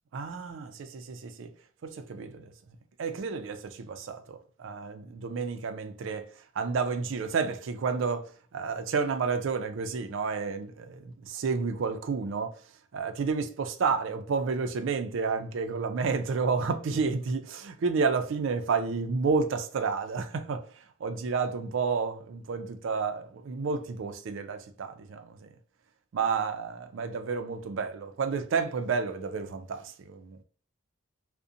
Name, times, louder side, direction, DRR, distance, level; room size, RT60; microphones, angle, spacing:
voice 1, 0.1-1.5 1.8-2.5 3.0-6.3 6.6-12.6 12.9-25.5 26.1-30.4, right 5 dB, 70° right, 0.4 m, -31 dB
2.5 x 2.1 x 2.6 m
head